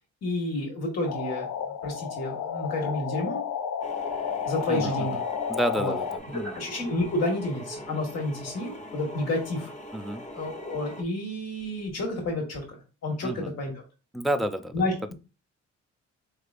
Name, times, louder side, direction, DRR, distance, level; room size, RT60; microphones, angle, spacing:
voice 1, 0.2-3.4 4.5-5.2 5.8-5.9 6.5-9.7 10.3-12.6 13.0-13.7 14.7-15.1, left 1 dB, 55° left, 0 dB, 1.6 m, -30 dB
sound 1, 1.0-6.2, left 7 dB, 75° left, 0.6 m, -32 dB
sound 2, 3.8-11.0, equal, 25° left, 0.9 m, -41 dB
voice 2, 4.7-5.2 5.5-6.6 9.9-10.2 13.2-13.5 14.1-14.8, right 1 dB, ahead, 6 dB, 0.4 m, -30 dB
5.0 x 3.2 x 2.5 m, 0.32 s
cardioid pair, 90°, 30 cm